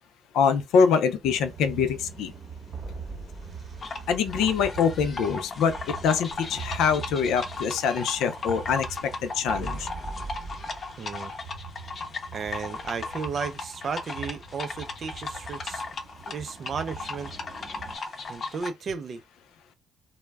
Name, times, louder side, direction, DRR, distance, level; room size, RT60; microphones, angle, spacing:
voice 1, 0.3-2.3 4.1-5.7 6.0-9.9, left 6 dB, 85° left, 0.4 m, -24 dB
sound 1, 1.2-18.0, right 5 dB, 35° right, 0.8 m, -42 dB
sound 2, 3.8-18.7, left 3 dB, 45° left, 0.6 m, -37 dB
voice 2, 11.0-11.3 12.3-15.9 16.3-17.3 18.3-19.2, right 5 dB, 50° right, 0.4 m, -34 dB
2.2 x 2.0 x 3.3 m
cardioid pair, 90°, 0 cm